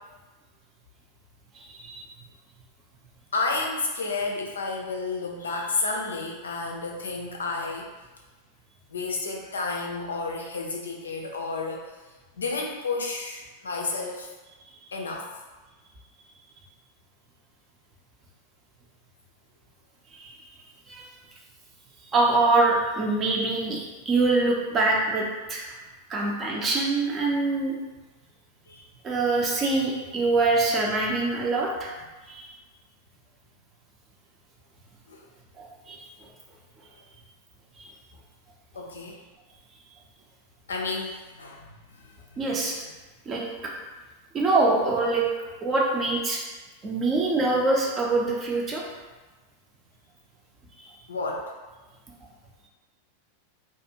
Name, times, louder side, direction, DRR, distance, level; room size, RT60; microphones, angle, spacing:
voice 1, 3.3-7.9 8.9-11.8 12.4-14.3 14.9-15.3 28.7-28.8 35.1-35.2 38.7-39.2 40.7-41.6 42.0-42.5 51.1-51.5, left 3 dB, 70° left, 0 dB, 0.4 m, -31 dB
voice 2, 22.1-25.7 26.1-27.8 29.0-31.9 32.3-32.4 35.6-36.0 42.4-42.8 43.3-43.4 44.3-45.2 45.6-46.4 46.8-48.8, right 3 dB, 25° right, -2 dB, 0.5 m, -24 dB
2.5 x 2.4 x 2.7 m, 1.2 s
figure-of-eight pair, 90°, 0 cm